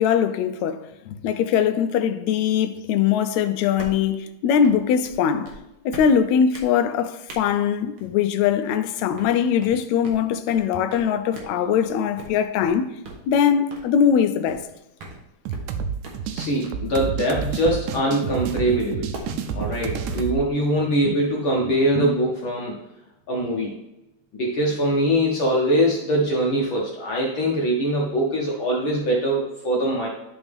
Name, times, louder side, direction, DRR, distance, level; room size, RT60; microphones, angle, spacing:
voice 1, 0.0-5.5 5.9-12.9 13.3-14.7, left 8 dB, 80° left, 1.8 m, -21 dB
sound 1, 3.8-4.1 4.6-4.8 5.0-5.2 5.5-5.6 5.9-6.1 6.5-6.7 7.3-7.4 8.0-8.1 8.4-8.7 9.2-9.3 9.6-9.8 10.0-10.2 10.5-10.6 10.9-11.1 11.3-11.5 11.8-11.9 12.2-12.3 12.6-12.8 13.0-13.2 13.7-13.9 14.5-14.6 15.0-15.2 15.5-15.8 16.0-16.2 16.6-16.8 17.2-17.3 17.6-17.8 18.3-18.6 19.1-19.3 20.1-20.9, right 2 dB, 55° right, 1.7 m, -40 dB
sound 2, 15.5-20.4, right 6 dB, 85° right, 2.0 m, -29 dB
voice 2, 16.3-19.1 19.5-22.7 23.3-23.7 24.3-30.1, right 1 dB, 60° left, 1.4 m, -22 dB
12.0 x 4.0 x 3.5 m
omnidirectional pair, 3.4 m